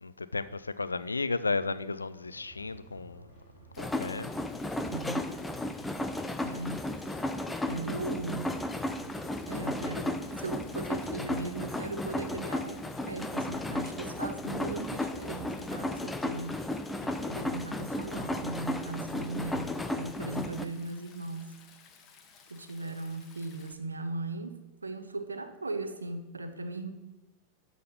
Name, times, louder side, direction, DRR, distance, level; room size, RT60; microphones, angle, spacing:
voice 1, 0.0-3.3 3.8-4.3 17.0-17.3, left 3 dB, 80° left, 0.4 m, -34 dB
sound 1, 2.2-15.9, right 4 dB, 20° right, 3.4 m, -54 dB
Stream, 3.7-23.7, left 6 dB, 30° left, 1.2 m, -57 dB
sound 2, 3.8-20.7, left 1 dB, 5° left, 0.6 m, -34 dB
voice 2, 4.8-5.4 6.4-6.9 7.7-8.6 9.5-16.6 17.3-21.6 22.5-26.9, right 2 dB, 80° right, 0.8 m, -38 dB
12.0 x 4.0 x 6.7 m
figure-of-eight pair, 90°, 0 cm